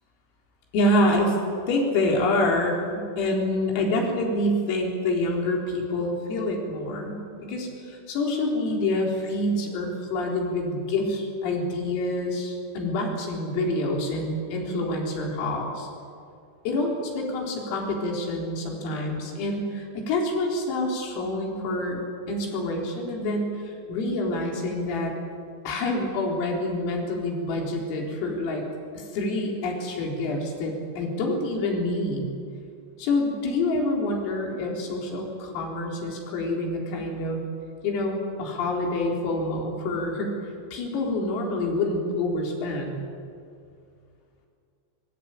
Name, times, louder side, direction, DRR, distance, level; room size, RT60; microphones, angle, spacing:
voice 1, 0.7-1.4 1.7-15.9 16.7-25.1 25.7-28.6 28.9-32.3 33.0-37.4 37.8-40.4 40.7-43.0, left 2 dB, 85° left, 0 dB, 6.7 m, -27 dB
24.5 x 23.0 x 9.1 m, 2.4 s
omnidirectional pair, 5.8 m